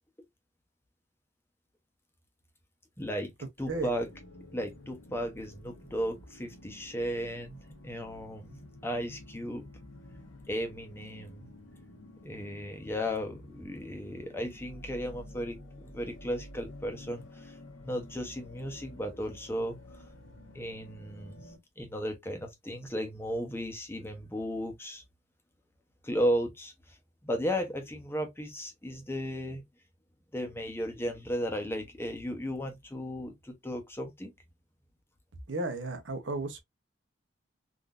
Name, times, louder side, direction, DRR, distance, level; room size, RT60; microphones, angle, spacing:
voice 1, 3.0-3.3 3.6-4.1 4.5-9.7 10.5-11.5 12.2-17.6 17.8-20.0 20.5-21.5 21.8-25.0 26.0-27.0 27.2-29.6 30.3-34.3, equal, 10° left, 0.7 m, -35 dB
sound 1, 3.6-21.6, left 1 dB, 90° left, 1.0 m, -50 dB
voice 2, 35.5-36.6, right 2 dB, 70° right, 0.8 m, -34 dB
3.7 x 2.5 x 2.3 m
head